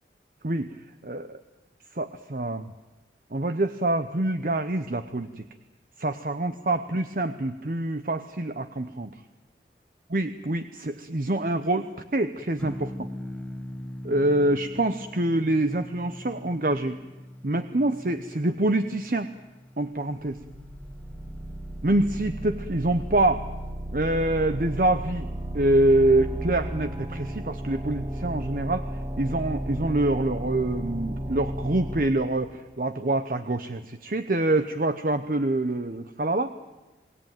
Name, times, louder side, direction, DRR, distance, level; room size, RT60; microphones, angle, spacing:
voice 1, 1.0-1.4 1.9-2.7 3.3-5.5 6.0-9.2 10.1-11.9 12.1-13.1 14.0-17.0 17.4-19.3 19.8-20.4 21.8-23.4 23.9-25.3 25.5-28.9 29.2-36.5, right 1 dB, 50° right, 10 dB, 0.8 m, -25 dB
sound 1, 12.6-23.1, equal, 10° left, 1.1 m, -42 dB
sound 2, 20.3-32.1, right 1 dB, 30° right, 1.7 m, -34 dB
28.5 x 19.0 x 9.2 m, 1.2 s
head